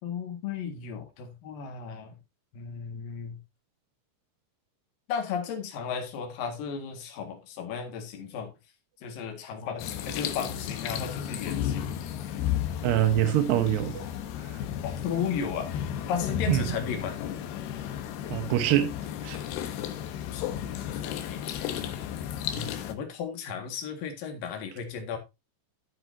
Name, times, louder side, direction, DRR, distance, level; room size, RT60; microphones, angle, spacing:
voice 1, 0.0-2.2 2.5-3.4 5.1-8.5 9.0-12.0 14.8-15.7 16.1-17.2 20.3-21.8 22.5-25.2, left 7 dB, 60° left, 3.4 m, -35 dB
sound 1, 9.8-22.9, left 10 dB, 80° left, 3.0 m, -33 dB
voice 2, 12.8-14.1 14.4-14.6 16.5-16.7 18.3-18.9 19.2-19.4, right 12 dB, 85° right, 3.2 m, -24 dB
12.5 x 7.8 x 2.7 m
omnidirectional pair, 4.8 m